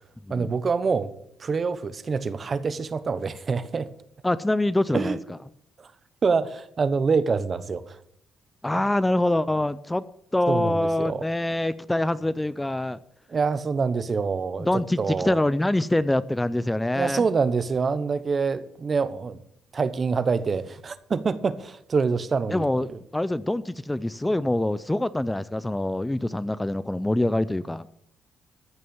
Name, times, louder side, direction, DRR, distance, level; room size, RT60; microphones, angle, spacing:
voice 1, 0.3-1.1 1.4-3.9 4.9-5.2 6.2-8.0 10.5-11.2 13.3-15.4 16.9-19.4 19.7-23.0, right 5 dB, 40° right, 14 dB, 1.0 m, -26 dB
voice 2, 4.2-5.2 8.6-10.0 10.3-13.0 14.6-17.3 22.5-22.9 23.1-27.9, left 1 dB, 10° left, 16 dB, 0.5 m, -25 dB
14.0 x 6.6 x 7.1 m, 0.70 s
cardioid pair, 90°, 0 cm